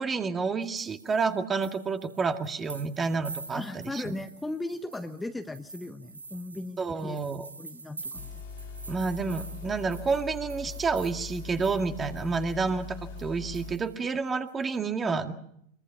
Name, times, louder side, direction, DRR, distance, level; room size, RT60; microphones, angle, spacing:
voice 1, 0.0-4.1 6.8-7.5 8.9-15.3, right 4 dB, 20° right, 7 dB, 2.0 m, -29 dB
sound 1, 0.6-12.8 13.2-13.3 13.5-14.8, right 3 dB, 85° right, 1.6 m, -47 dB
voice 2, 3.5-7.2 7.6-8.4, left 2 dB, 5° left, 7 dB, 1.3 m, -37 dB
sound 2, 8.1-13.8, left 4 dB, 60° left, 2.6 m, -41 dB
25.0 x 23.5 x 5.8 m, 0.72 s
figure-of-eight pair, 90°, 0 cm